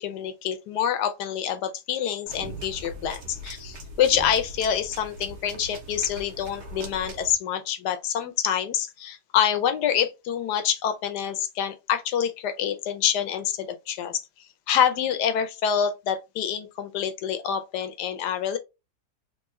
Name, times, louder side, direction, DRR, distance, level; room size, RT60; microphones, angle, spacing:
voice 1, 0.0-14.2 14.7-18.6, left 9 dB, 80° left, 1.2 m, -26 dB
sound 1, 2.3-7.3, right 1 dB, 65° right, 1.5 m, -40 dB
3.6 x 2.9 x 3.0 m
omnidirectional pair, 1.8 m